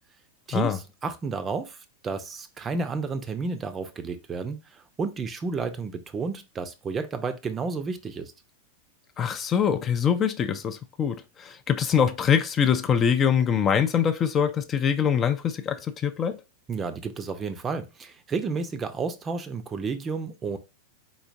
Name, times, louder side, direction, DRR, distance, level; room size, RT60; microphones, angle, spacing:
voice 1, 0.5-8.3 16.7-20.6, right 4 dB, 20° right, 0.6 m, -31 dB
voice 2, 9.2-16.3, left 8 dB, 25° left, 0.4 m, -24 dB
4.2 x 4.0 x 2.5 m
figure-of-eight pair, 90°, 0 cm